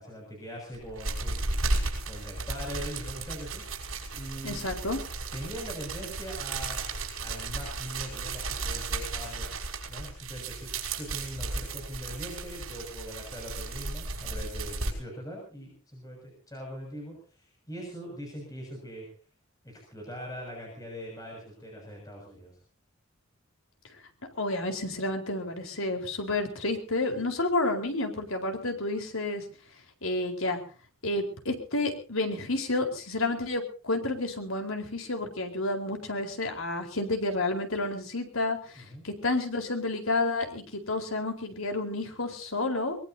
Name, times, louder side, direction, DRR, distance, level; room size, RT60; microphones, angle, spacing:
voice 1, 0.0-1.4 2.0-4.6 5.3-6.9 7.2-9.6 9.9-19.1 19.6-22.6 38.8-39.0, equal, 15° left, -1 dB, 6.6 m, -42 dB
sound 1, 0.7-14.9, right 3 dB, 80° right, 5.5 m, -34 dB
voice 2, 4.4-5.0 24.4-29.4 30.0-30.6 31.0-38.6 39.0-43.0, left 2 dB, 80° left, 4 dB, 4.3 m, -30 dB
23.0 x 22.0 x 2.8 m, 0.38 s
head